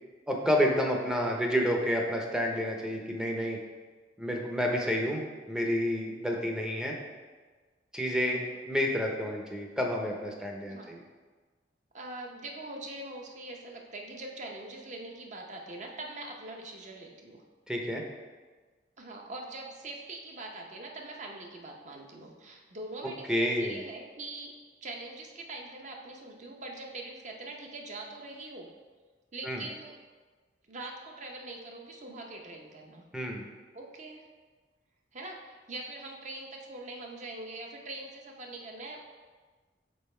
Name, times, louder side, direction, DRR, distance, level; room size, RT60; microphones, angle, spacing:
voice 1, 0.3-3.6 4.2-5.2 5.5-6.9 7.9-11.0 17.7-18.0 23.3-23.8 29.4-29.6 33.1-33.4, equal, 5° right, 0 dB, 0.6 m, -29 dB
voice 2, 10.7-11.0 11.9-17.4 19.0-24.5 24.8-28.7 29.3-30.0 30.7-33.0 33.7-34.3 35.1-39.1, right 2 dB, 40° right, 1 dB, 0.7 m, -43 dB
5.5 x 4.0 x 4.3 m, 1.4 s
head